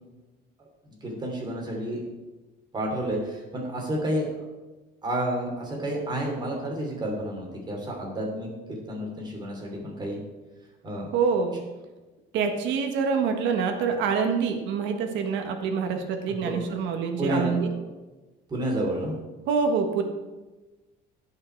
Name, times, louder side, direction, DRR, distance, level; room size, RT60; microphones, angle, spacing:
voice 1, 1.0-2.0 2.7-4.3 5.0-10.2 10.8-11.1 16.4-16.8 17.2-17.7 18.5-19.1, right 1 dB, 20° right, -1 dB, 3.0 m, -30 dB
voice 2, 11.1-11.5 12.3-17.7 19.5-20.0, right 5 dB, 75° right, 5 dB, 1.4 m, -26 dB
16.5 x 5.7 x 4.5 m, 1.2 s
cardioid pair, 160°, 19 cm